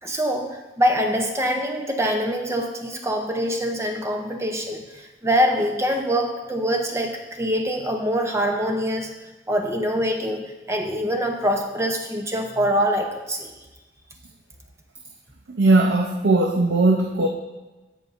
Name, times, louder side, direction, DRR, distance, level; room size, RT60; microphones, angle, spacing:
voice 1, 0.0-13.5, equal, 15° right, 3 dB, 0.6 m, -24 dB
voice 2, 15.5-17.3, right 2 dB, 80° right, 1 dB, 0.7 m, -18 dB
16.0 x 5.3 x 2.5 m, 1.2 s
head